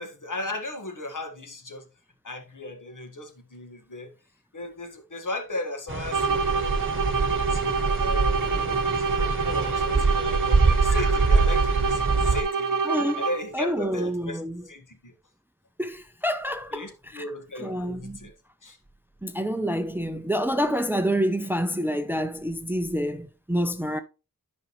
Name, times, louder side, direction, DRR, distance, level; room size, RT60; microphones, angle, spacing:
voice 1, 0.0-1.8 2.2-4.1 4.5-6.8 7.4-8.6 8.9-12.8 13.2-14.4 14.7-15.1 16.7-18.3 18.6-18.8, left 2 dB, 60° left, 1.8 m, -36 dB
sound 1, 5.9-12.4, right 4 dB, 35° right, 1.2 m, -24 dB
sound 2, 6.1-13.6, right 4 dB, 60° right, 0.8 m, -27 dB
voice 2, 12.8-13.2 13.5-14.6 15.8-17.3 17.6-18.3 19.2-24.0, equal, 5° right, 0.6 m, -28 dB
11.0 x 5.2 x 3.1 m
wide cardioid pair, 80°, 36 cm